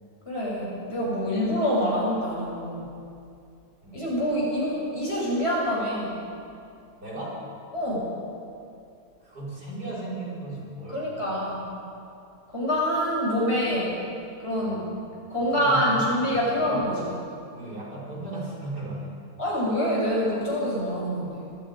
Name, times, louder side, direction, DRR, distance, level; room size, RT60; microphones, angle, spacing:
voice 1, 0.3-2.8 3.9-6.2 7.7-8.1 10.9-11.6 12.5-14.0 14.4-14.8 15.3-17.1 19.4-21.4, equal, 40° left, -5 dB, 7.7 m, -26 dB
voice 2, 7.0-7.5 9.2-11.1 14.5-14.9 15.4-16.9 17.5-19.1, right 1 dB, 90° right, -6 dB, 5.8 m, -36 dB
27.5 x 19.5 x 5.3 m, 2.5 s
omnidirectional pair, 1.7 m